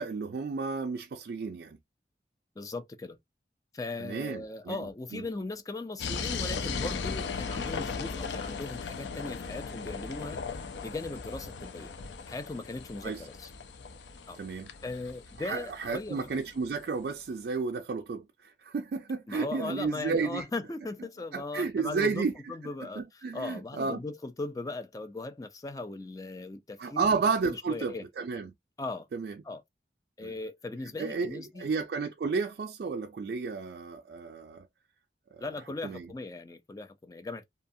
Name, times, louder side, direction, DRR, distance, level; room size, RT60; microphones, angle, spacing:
voice 1, 0.0-1.8 4.0-4.8 5.1-5.2 13.0-13.2 14.4-14.7 15.4-20.5 21.3-22.5 23.0-24.0 26.8-28.5 29.1-29.3 30.2-30.3 31.0-34.7 35.3-35.4 35.8-36.1, right 4 dB, 60° right, 0.3 m, -32 dB
voice 2, 2.6-3.2 3.7-11.9 12.3-13.5 14.3-14.4 14.8-16.2 19.3-28.1 28.8-29.1 29.4-29.6 30.2-31.7 32.2-32.3 35.4-37.4, left 2 dB, 20° left, 0.4 m, -38 dB
sound 1, 6.0-16.7, left 5 dB, 85° left, 0.5 m, -37 dB
2.7 x 2.3 x 2.6 m
head